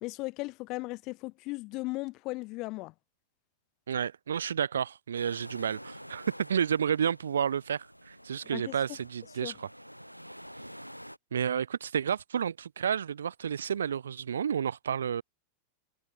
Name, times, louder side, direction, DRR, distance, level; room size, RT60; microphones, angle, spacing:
voice 1, 0.0-2.9 8.5-8.8 9.4-9.5, left 23 dB, 40° left, 0.6 m, -36 dB
voice 2, 3.9-9.7 11.3-15.2, right 8 dB, 65° right, 0.3 m, -31 dB
sound 1, 5.1-11.2, equal, 90° right, 1.2 m, -48 dB
figure-of-eight pair, 90°, 0 cm